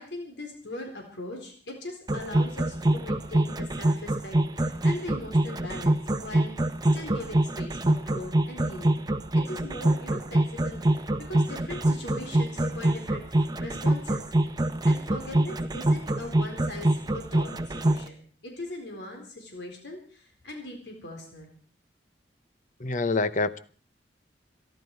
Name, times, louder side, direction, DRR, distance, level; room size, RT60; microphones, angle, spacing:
voice 1, 0.0-6.5 6.9-9.0 9.3-14.5 14.8-21.5, left 1 dB, 70° left, 4.1 m, -40 dB
sound 1, 2.1-18.1, right 1 dB, 20° right, 0.9 m, -25 dB
voice 2, 22.8-23.6, left 3 dB, 45° left, 0.8 m, -26 dB
26.0 x 11.5 x 4.7 m
head